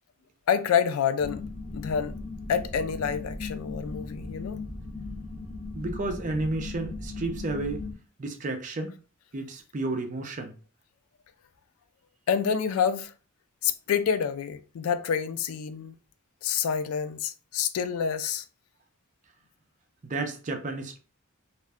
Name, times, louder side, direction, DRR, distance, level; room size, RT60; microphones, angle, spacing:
voice 1, 0.5-1.4 1.7-2.2 2.5-4.6 12.3-13.1 13.6-15.9 16.4-18.4, left 7 dB, 80° left, 0.3 m, -27 dB
sound 1, 1.2-7.9, left 3 dB, 30° left, 1.0 m, -37 dB
voice 2, 5.7-7.8 8.2-8.9 9.3-10.5 20.0-21.0, right 2 dB, 35° right, 0.5 m, -32 dB
2.4 x 2.1 x 3.4 m
head